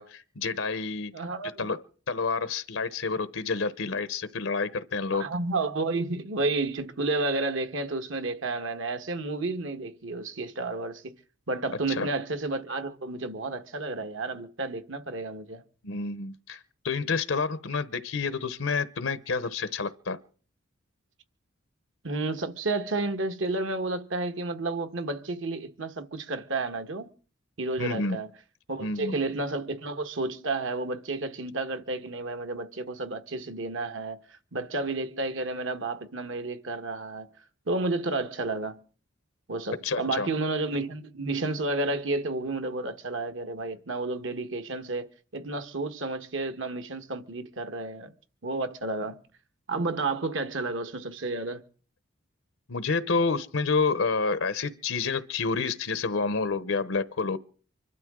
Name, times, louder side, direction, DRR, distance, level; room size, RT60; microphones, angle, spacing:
voice 1, 0.0-1.1 1.6-5.3 11.9-12.1 15.8-20.2 27.8-28.2 28.8-29.2 39.8-40.3 52.7-57.4, left 4 dB, 85° left, 0.9 m, -29 dB
voice 2, 1.1-1.7 5.1-11.1 11.5-15.6 22.0-27.1 27.6-28.3 28.7-34.2 34.5-37.3 37.7-38.9 39.5-48.1 48.4-49.2 49.7-51.6, right 2 dB, 70° right, 1.4 m, -31 dB
25.5 x 12.5 x 3.7 m
head